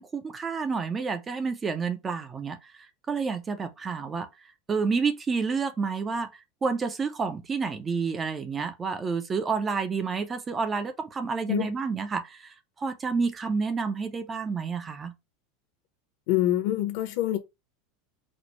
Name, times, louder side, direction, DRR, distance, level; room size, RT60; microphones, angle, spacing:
voice 1, 0.0-2.6 3.1-4.3 4.7-6.3 6.6-12.5 12.8-15.1, right 5 dB, 20° right, 0.4 m, -29 dB
voice 2, 16.3-17.4, left 13 dB, 60° left, 0.8 m, -25 dB
4.2 x 2.0 x 3.0 m
supercardioid pair, 155°, 0 cm